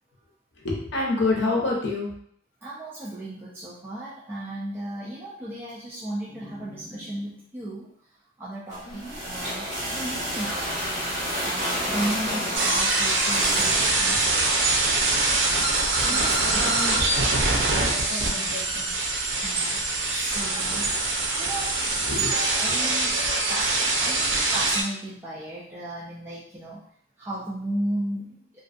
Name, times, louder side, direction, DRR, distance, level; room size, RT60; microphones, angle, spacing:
voice 1, 0.6-2.1 8.9-9.2 14.1-14.2 15.7-15.8 16.1-17.0 17.7-18.9 22.0-22.4, left 3 dB, 65° left, -2 dB, 0.7 m, -29 dB
voice 2, 2.6-7.9 8.4-10.8 11.4-14.7 16.0-16.8 19.4-21.8 22.5-23.2 23.5-26.8 27.2-28.4, right 1 dB, 10° right, -8 dB, 0.4 m, -35 dB
sound 1, 8.7-13.9, equal, 40° right, 1.1 m, -30 dB
sound 2, 12.5-24.8, right 2 dB, 75° right, 0.5 m, -24 dB
2.5 x 2.3 x 2.4 m, 0.65 s
head